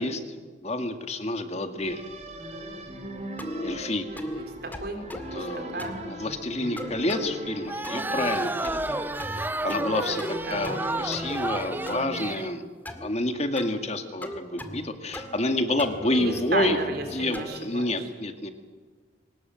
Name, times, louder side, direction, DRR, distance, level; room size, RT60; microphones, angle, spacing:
voice 1, 0.0-2.0 3.6-4.1 5.0-5.8 6.1-9.0 9.3-12.6 13.0-16.8 17.1-18.5, left 1 dB, 35° left, 7 dB, 1.9 m, -29 dB
sound 1, 1.8-12.4, right 1 dB, 40° right, 3.1 m, -39 dB
sound 2, 3.4-3.8 4.2-4.4 4.7-5.4 5.8-6.1 6.8-7.3 7.8-8.2 8.6-8.9 9.2-9.9 10.2-10.8 11.1-12.0 12.9-13.1 13.6-13.8 14.2-14.9 15.1-15.5 15.8-17.6, left 1 dB, 10° left, 2.0 m, -38 dB
voice 2, 4.2-6.0 10.5-10.8 16.1-17.9, right 2 dB, 60° right, 5 dB, 4.2 m, -33 dB
sound 3, 7.7-12.5, right 2 dB, 10° right, 0.6 m, -31 dB
23.5 x 20.0 x 7.6 m, 1.4 s
head